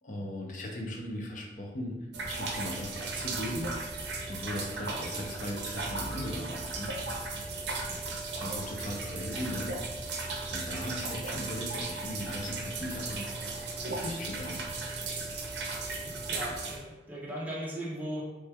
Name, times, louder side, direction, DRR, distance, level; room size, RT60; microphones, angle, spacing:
voice 1, 0.0-2.0 2.2-3.7 4.3-6.9 8.4-9.7 10.0-13.3 13.8-14.6, left 1 dB, 45° left, 0 dB, 0.6 m, -38 dB
sound 1, 2.1-16.8, right 3 dB, 65° right, 0.5 m, -36 dB
voice 2, 15.6-18.3, equal, 10° right, -5 dB, 0.5 m, -39 dB
3.2 x 3.1 x 2.2 m, 1.1 s
head